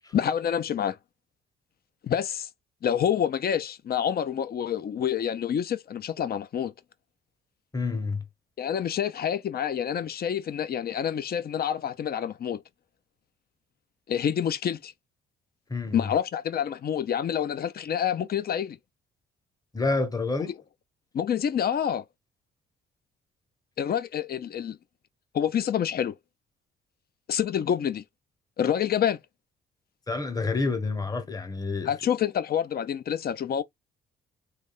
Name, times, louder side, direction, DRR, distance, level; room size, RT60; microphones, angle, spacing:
voice 1, 0.1-1.0 2.0-2.5 2.8-6.7 8.6-12.6 14.1-14.9 15.9-18.8 21.1-22.0 23.8-24.8 25.3-26.2 27.3-28.0 28.6-29.2 31.8-33.6, left 9 dB, 50° left, 0.6 m, -27 dB
voice 2, 7.7-8.2 15.7-16.1 19.7-20.5 30.1-31.9, left 3 dB, 20° left, 1.1 m, -28 dB
3.4 x 3.3 x 2.5 m
cardioid pair, 90°, 20 cm